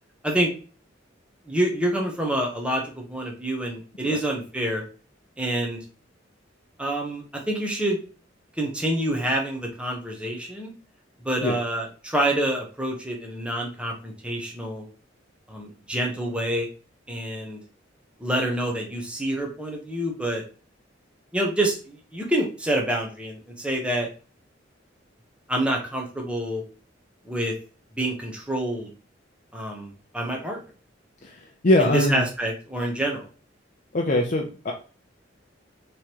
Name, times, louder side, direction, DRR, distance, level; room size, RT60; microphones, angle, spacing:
voice 1, 1.5-4.8 5.4-5.8 6.8-8.0 8.6-10.7 11.2-14.8 15.5-16.7 17.1-17.6 18.2-20.4 21.3-24.1 25.5-26.6 27.3-27.5 28.0-28.9 29.5-30.6 31.8-33.3, right 1 dB, 5° right, 0 dB, 1.0 m, -27 dB
voice 2, 31.2-32.2 33.9-34.7, left 1 dB, 40° left, 0 dB, 0.6 m, -22 dB
3.6 x 3.1 x 4.5 m, 0.37 s
head